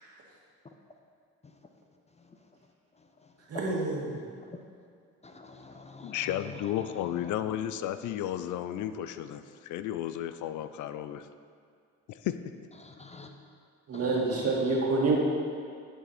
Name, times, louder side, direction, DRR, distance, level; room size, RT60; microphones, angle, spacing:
voice 1, 3.5-4.2 13.9-15.2, right 3 dB, 55° right, -2 dB, 1.9 m, -27 dB
voice 2, 5.2-6.2 6.9-7.4 12.8-13.3 13.9-14.5, left 4 dB, 20° left, 5 dB, 0.6 m, -47 dB
voice 3, 6.0-11.3 12.2-12.4, left 11 dB, 75° left, 11 dB, 0.5 m, -33 dB
11.0 x 5.7 x 4.3 m, 2.2 s
cardioid pair, 90°, 30 cm